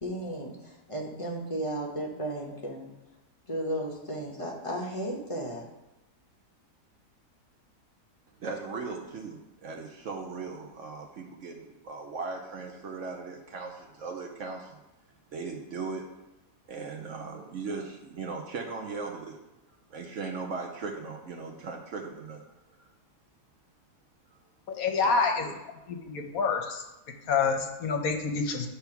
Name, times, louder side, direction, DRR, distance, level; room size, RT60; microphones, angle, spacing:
voice 1, 0.0-2.9 3.5-5.6, right 1 dB, 25° left, -1 dB, 0.8 m, -34 dB
voice 2, 8.4-14.8 15.3-16.0 16.7-19.4 19.9-22.5 22.8-22.9 25.0-25.1 25.4-25.5, right 4 dB, 60° right, 2 dB, 0.9 m, -38 dB
voice 3, 24.8-25.5 25.9-26.8 27.3-28.7, left 5 dB, 65° left, 4 dB, 1.1 m, -27 dB
8.2 x 3.4 x 5.8 m, 0.99 s
omnidirectional pair, 1.7 m